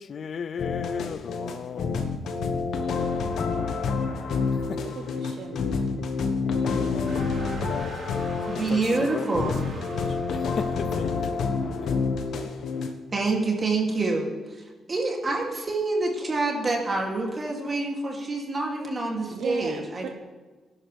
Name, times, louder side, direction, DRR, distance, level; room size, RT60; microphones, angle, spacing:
voice 1, 0.0-2.0 4.7-4.8 8.2-8.3 8.7-9.5 9.9-11.3, left 6 dB, 55° left, 0.4 m, -36 dB
sound 1, 0.6-12.9, left 4 dB, 75° left, 1.2 m, -28 dB
voice 2, 4.9-6.0 19.3-20.1, right 7 dB, 75° right, 0.8 m, -37 dB
sound 2, 7.1-11.5, right 2 dB, 55° right, 3.5 m, -44 dB
voice 3, 8.5-9.5 13.1-14.6 14.9-20.1, right 3 dB, 30° right, 2.6 m, -27 dB
18.0 x 11.0 x 3.4 m
cardioid pair, 100°, 0 cm